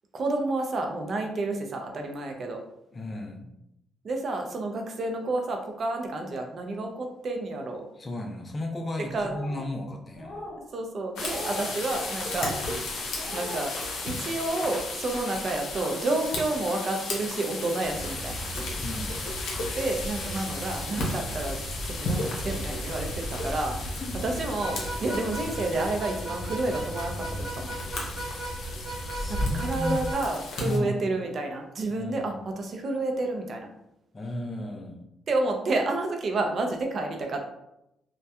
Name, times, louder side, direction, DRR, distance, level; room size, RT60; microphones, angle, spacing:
voice 1, 0.1-2.6 4.0-7.8 9.1-9.3 10.7-12.9 13.3-13.7 14.0-18.4 19.7-23.7 24.2-27.7 29.3-33.7 35.3-37.4, right 2 dB, 50° right, 3 dB, 0.4 m, -30 dB
voice 2, 2.9-3.5 8.0-10.5 18.8-19.2 23.7-24.2 29.1-30.1 30.6-31.0 31.9-32.3 34.1-35.0, left 1 dB, 30° left, 2 dB, 0.5 m, -34 dB
sound 1, 9.1-9.6 10.1-10.6 11.2-11.7 12.3-12.7 13.1-13.7, left 1 dB, ahead, 1.3 m, -40 dB
sound 2, 11.2-30.8, left 2 dB, 75° left, 0.7 m, -34 dB
sound 3, 17.8-30.1, right 1 dB, 30° right, 1.1 m, -36 dB
2.7 x 2.2 x 2.2 m, 0.84 s
cardioid pair, 90°, 0 cm